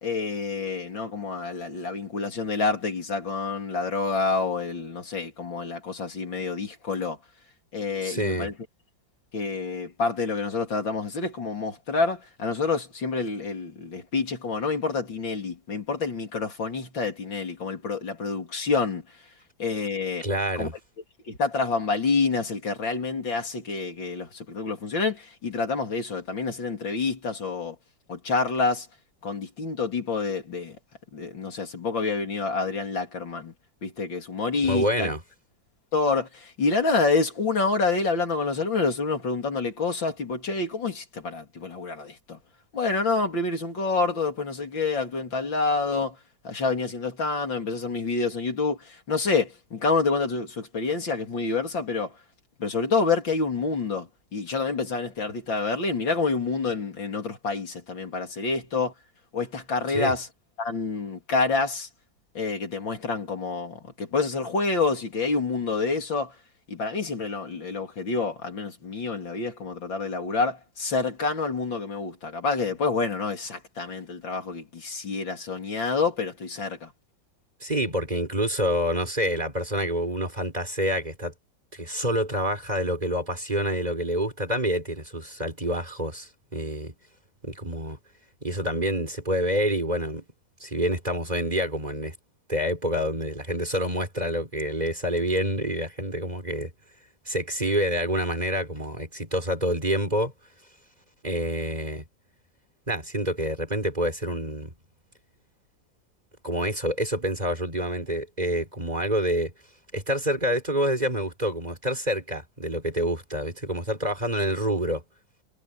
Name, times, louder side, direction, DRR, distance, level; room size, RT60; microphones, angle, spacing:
voice 1, 0.0-7.2 7.7-8.5 9.3-19.0 19.6-20.2 20.6-20.7 21.3-27.8 28.1-28.9 29.2-30.8 31.1-33.5 33.8-35.1 35.9-42.4 42.7-46.2 46.4-52.2 52.6-58.9 59.3-60.3 60.6-61.9 62.3-66.4 66.7-76.9, left 4 dB, 75° left, 3.9 m, -28 dB
voice 2, 8.0-8.5 20.2-20.7 34.6-35.2 59.9-60.1 77.6-81.3 81.7-86.9 87.4-88.0 88.4-90.2 90.6-92.1 92.5-96.7 97.3-100.3 101.2-102.0 102.9-104.7 106.4-109.5 109.9-115.0, equal, 20° right, 3.7 m, -27 dB
omnidirectional pair, 2.1 m